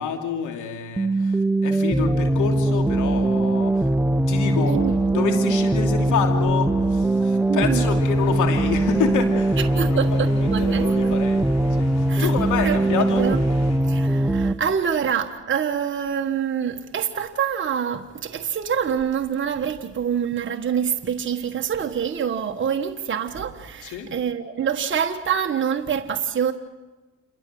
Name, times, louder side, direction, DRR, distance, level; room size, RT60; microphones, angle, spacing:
voice 1, 0.0-4.8 5.1-9.6 9.9-11.4 11.8-13.3 23.8-24.1, left 7 dB, 80° left, 2.9 m, -28 dB
sound 1, 1.0-14.5, right 2 dB, 5° right, 0.8 m, -21 dB
voice 2, 7.5-7.9 9.7-11.2 12.1-12.3 12.6-12.8 13.2-13.4 13.9-26.5, right 8 dB, 40° right, 1.5 m, -26 dB
sound 2, 8.0-13.8, left 3 dB, 60° left, 6.8 m, -39 dB
28.5 x 23.0 x 7.9 m
cardioid pair, 90°, 30 cm